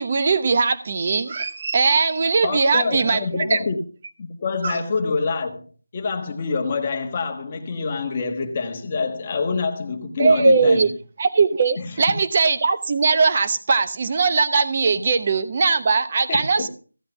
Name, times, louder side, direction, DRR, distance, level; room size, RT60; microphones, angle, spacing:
voice 1, 0.0-3.2 3.5-3.6 4.6-4.8 10.2-10.9 11.2-16.7, right 4 dB, 20° right, 1.0 m, -20 dB
voice 2, 2.4-3.8 4.2-5.6 5.9-11.0 11.8-12.0 16.3-16.7, left 4 dB, 15° left, 1.4 m, -26 dB
15.5 x 8.5 x 5.7 m
figure-of-eight pair, 180°, 0 cm